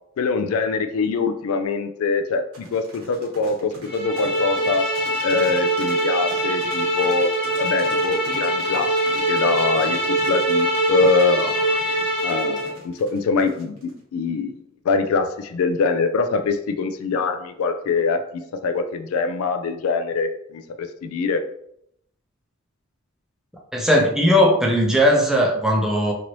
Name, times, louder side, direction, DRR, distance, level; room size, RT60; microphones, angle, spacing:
voice 1, 0.2-4.9 5.2-7.3 7.6-9.0 9.3-11.8 12.2-14.6 14.9-21.4, left 4 dB, 75° left, 8 dB, 0.3 m, -23 dB
sound 1, 2.5-14.0, right 2 dB, 90° right, 1.1 m, -42 dB
sound 2, 3.9-12.7, right 1 dB, 45° left, 1.0 m, -23 dB
voice 2, 23.7-26.1, equal, ahead, -2 dB, 0.5 m, -18 dB
3.0 x 2.6 x 3.0 m, 0.74 s
head